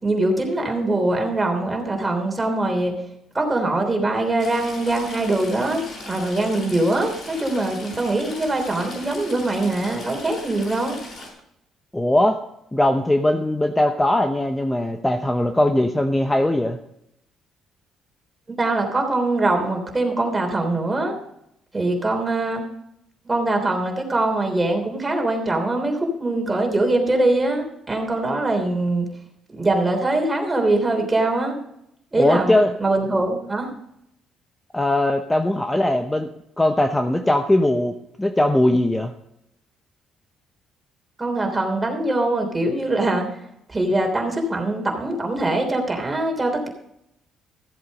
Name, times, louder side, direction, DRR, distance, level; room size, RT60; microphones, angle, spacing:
voice 1, 0.0-2.9 3.3-11.0 18.5-21.1 21.7-22.6 23.2-29.1 29.5-31.5 32.1-33.7 41.2-43.4 43.7-46.7, right 2 dB, 20° right, 3 dB, 3.3 m, -22 dB
Stream / Trickle dribble, 4.4-11.3, left 2 dB, 55° left, 6.1 m, -38 dB
voice 2, 11.9-12.4 12.7-16.8 32.2-32.7 34.7-36.3 36.6-39.1, left 1 dB, 10° left, 6 dB, 0.9 m, -20 dB
14.5 x 7.9 x 5.3 m, 0.78 s
cardioid pair, 90°, 0 cm